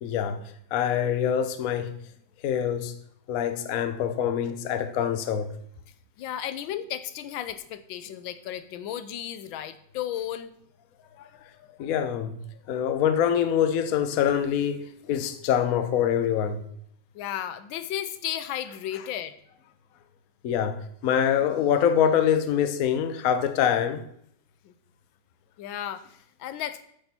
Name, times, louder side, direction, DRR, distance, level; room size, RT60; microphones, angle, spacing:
voice 1, 0.0-0.4 0.7-1.9 2.4-2.9 3.3-5.5 11.2-11.3 11.8-12.4 12.7-16.6 18.9-19.0 20.4-24.0, left 9 dB, 60° left, 1.0 m, -25 dB
voice 2, 6.2-10.5 17.1-19.4 24.6-24.7 25.6-26.8, left 11 dB, 85° left, 1.4 m, -34 dB
8.7 x 6.1 x 4.2 m
omnidirectional pair, 2.1 m